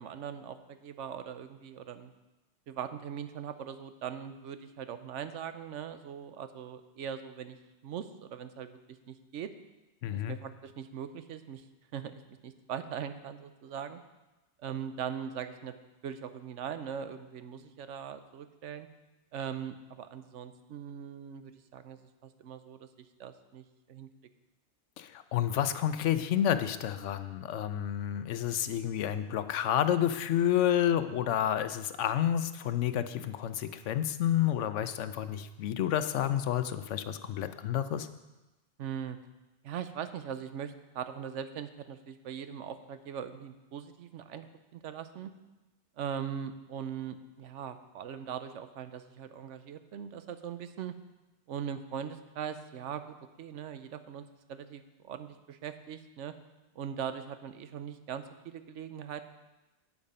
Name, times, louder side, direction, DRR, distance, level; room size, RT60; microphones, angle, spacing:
voice 1, 0.0-2.1 2.7-7.6 7.8-9.5 10.1-11.6 11.9-12.1 12.4-14.0 14.6-15.7 16.0-18.9 19.3-24.1 38.8-39.2 39.6-44.5 44.7-45.3 46.0-50.9 51.5-56.3 56.8-59.3, right 8 dB, 85° right, 10 dB, 1.0 m, -40 dB
voice 2, 10.0-10.4 25.0-38.1, left 10 dB, 85° left, 11 dB, 1.0 m, -30 dB
8.7 x 8.5 x 5.5 m, 1.1 s
omnidirectional pair, 1.2 m